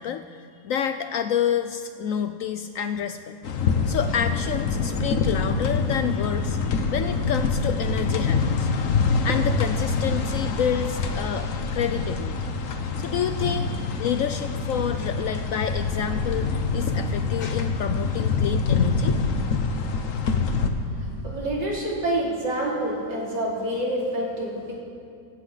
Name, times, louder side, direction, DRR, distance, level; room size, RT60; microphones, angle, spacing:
voice 1, 0.0-3.4 3.9-8.7 9.2-12.5 13.0-13.7 14.0-19.1, left 8 dB, 70° left, 9 dB, 0.8 m, -29 dB
sound 1, 3.4-20.7, left 4 dB, 55° left, 1.3 m, -25 dB
voice 2, 20.4-24.8, right 1 dB, 90° right, -4 dB, 3.8 m, -28 dB
17.5 x 15.5 x 4.0 m, 2.4 s
omnidirectional pair, 1.8 m